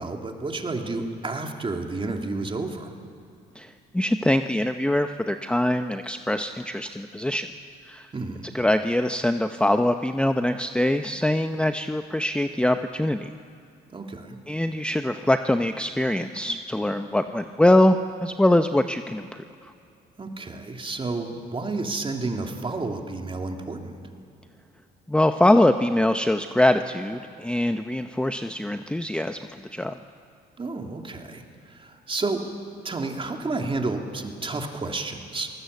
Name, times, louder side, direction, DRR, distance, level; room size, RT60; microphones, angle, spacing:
voice 1, 0.0-2.9 8.1-8.5 13.9-14.4 20.2-24.1 30.6-32.5 32.8-35.5, right 3 dB, 30° right, 2 dB, 3.1 m, -31 dB
voice 2, 3.6-7.5 7.8-8.1 8.5-13.3 14.5-19.7 25.1-30.0, left 1 dB, 5° left, 7 dB, 0.8 m, -23 dB
23.5 x 19.5 x 8.3 m, 2.6 s
cardioid pair, 80°, 19 cm